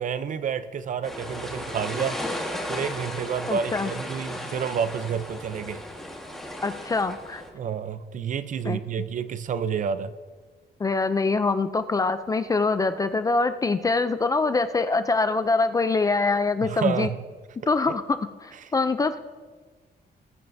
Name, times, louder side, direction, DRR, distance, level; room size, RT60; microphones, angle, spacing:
voice 1, 0.0-2.2 2.7-5.8 7.5-10.1 16.6-17.2 17.9-18.0 18.6-18.7, right 7 dB, 45° right, 13 dB, 0.5 m, -29 dB
sound 1, 1.0-7.5, left 1 dB, ahead, 1.4 m, -35 dB
voice 2, 3.5-3.9 6.6-7.4 8.7-8.8 10.8-17.1 17.7-19.2, left 3 dB, 20° left, 11 dB, 0.3 m, -24 dB
19.5 x 9.0 x 2.6 m, 1.4 s
wide cardioid pair, 175°, 18 cm